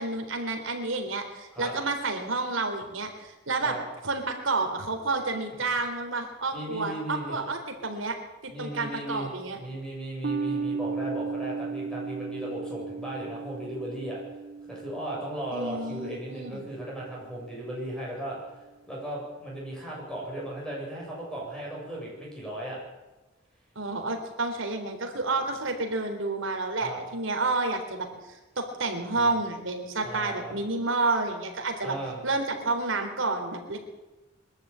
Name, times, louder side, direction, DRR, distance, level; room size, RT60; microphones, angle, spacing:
voice 1, 0.0-3.8 4.0-8.2 8.4-9.6 15.5-16.7 23.8-32.0 32.2-33.8, right 3 dB, 75° right, 5 dB, 3.8 m, -30 dB
voice 2, 6.5-7.4 8.5-9.3 9.6-14.2 14.7-18.4 18.9-22.8 26.8-27.0 29.2-29.3 30.0-30.6 31.8-32.2, right 1 dB, 5° left, -4 dB, 7.7 m, -36 dB
sound 1, 10.2-17.0, right 5 dB, 55° right, 0.7 m, -35 dB
23.0 x 13.0 x 8.9 m, 1.1 s
head